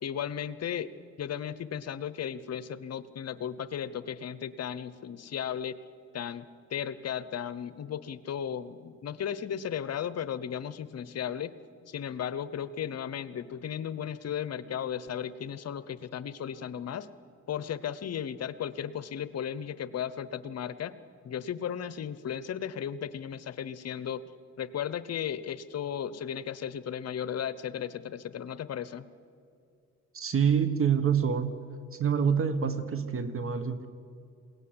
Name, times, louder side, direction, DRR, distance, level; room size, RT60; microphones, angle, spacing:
voice 1, 0.0-5.8 6.1-6.4 6.7-11.5 11.9-17.1 17.5-21.0 21.2-24.2 24.6-29.1, left 9 dB, 55° left, 15 dB, 0.9 m, -35 dB
voice 2, 30.1-31.6 31.9-33.9, right 7 dB, 45° right, 12 dB, 1.4 m, -26 dB
21.5 x 18.0 x 9.9 m, 2.4 s
cardioid pair, 90°, 30 cm